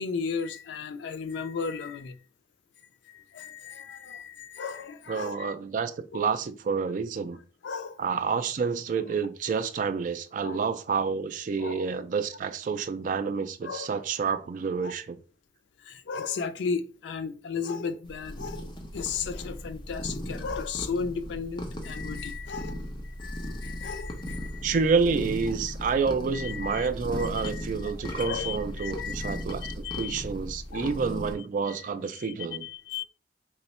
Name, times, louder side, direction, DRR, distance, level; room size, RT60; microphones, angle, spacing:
voice 1, 0.0-2.2 3.0-5.5 6.1-6.4 7.6-8.0 10.4-10.6 11.6-11.9 13.6-13.9 14.8-14.9 15.8-24.7 26.3-26.9 27.2-30.2 30.7-30.9 31.7-31.8 32.1-33.0, left 5 dB, 85° left, 0.4 m, -35 dB
voice 2, 5.1-7.4 8.0-15.2 24.6-32.7, right 5 dB, 45° right, 0.3 m, -29 dB
sound 1, 18.0-31.3, equal, 25° left, 0.6 m, -37 dB
Musical instrument, 27.1-31.4, equal, 10° left, 1.1 m, -49 dB
2.9 x 2.2 x 4.1 m
head